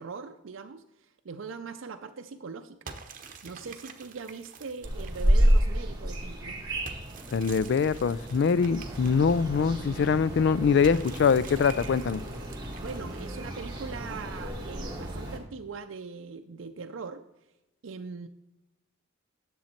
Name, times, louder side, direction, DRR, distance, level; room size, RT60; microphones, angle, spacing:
voice 1, 0.0-2.9 3.4-6.6 12.8-17.2 17.8-18.3, right 5 dB, 75° right, 5 dB, 0.5 m, -41 dB
sound 1, 2.9-5.8 6.9-9.8 10.8-13.5, right 5 dB, 45° right, 0.9 m, -48 dB
sound 2, 4.8-15.4, equal, 20° right, 1.7 m, -30 dB
voice 2, 7.3-12.2, left 5 dB, 60° left, 17 dB, 0.4 m, -23 dB
10.5 x 7.1 x 4.4 m, 0.93 s
head